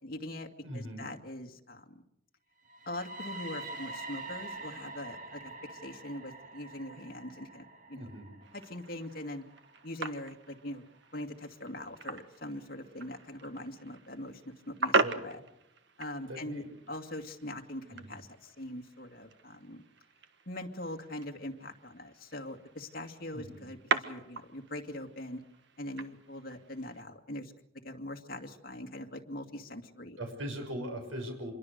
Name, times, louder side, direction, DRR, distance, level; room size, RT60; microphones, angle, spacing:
voice 1, 0.0-2.0 2.9-8.0 8.5-9.4 9.8-10.8 11.1-15.4 16.0-19.8 20.5-25.4 25.8-27.5 27.8-30.2, left 1 dB, 50° left, 3 dB, 2.3 m, -42 dB
voice 2, 0.6-1.1 7.9-8.3 15.0-15.4 16.3-16.8 17.9-18.1 23.3-23.7 30.2-31.5, right 1 dB, 85° right, 4 dB, 6.4 m, -40 dB
sound 1, 2.6-10.6, right 2 dB, 40° right, 2.0 m, -46 dB
sound 2, 8.4-27.0, right 3 dB, 60° right, 1.5 m, -39 dB
27.0 x 22.5 x 6.7 m, 0.82 s
head